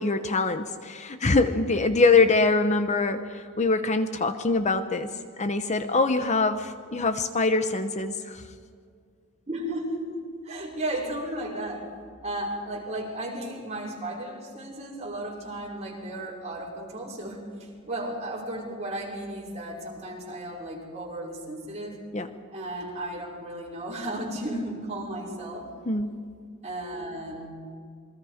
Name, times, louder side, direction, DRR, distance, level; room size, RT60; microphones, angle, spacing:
voice 1, 0.0-8.4 22.1-22.3 25.9-26.2, left 3 dB, 35° left, 9 dB, 0.9 m, -24 dB
voice 2, 9.5-11.9 12.2-22.0 22.5-25.7 26.6-27.5, right 1 dB, 30° right, -3 dB, 5.7 m, -34 dB
27.5 x 22.5 x 5.1 m, 2.2 s
head